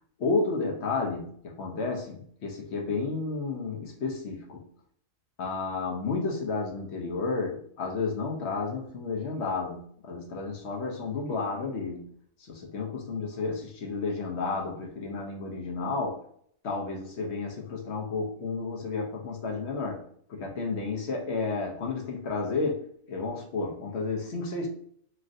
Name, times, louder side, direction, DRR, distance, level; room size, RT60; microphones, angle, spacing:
voice 1, 0.2-4.6 5.4-12.1 12.4-16.2 16.6-24.7, left 4 dB, 60° left, 0 dB, 0.7 m, -32 dB
3.1 x 2.5 x 2.5 m, 0.63 s
omnidirectional pair, 1.6 m